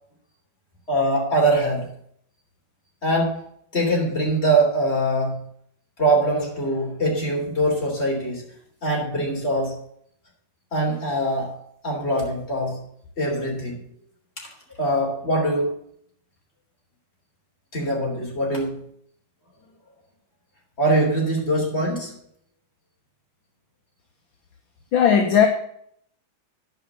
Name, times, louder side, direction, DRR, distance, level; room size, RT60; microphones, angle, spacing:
voice 1, 0.9-1.9 3.0-3.4 3.7-5.4 6.0-8.4 8.8-9.8 10.7-11.5 11.8-12.8 13.2-13.8 14.4-14.5 14.8-15.7 17.7-18.8 20.8-22.1, right 1 dB, 30° left, -1 dB, 3.6 m, -23 dB
voice 2, 24.9-25.5, left 8 dB, 65° left, 3 dB, 1.7 m, -16 dB
11.0 x 5.6 x 7.0 m, 0.66 s
omnidirectional pair, 2.4 m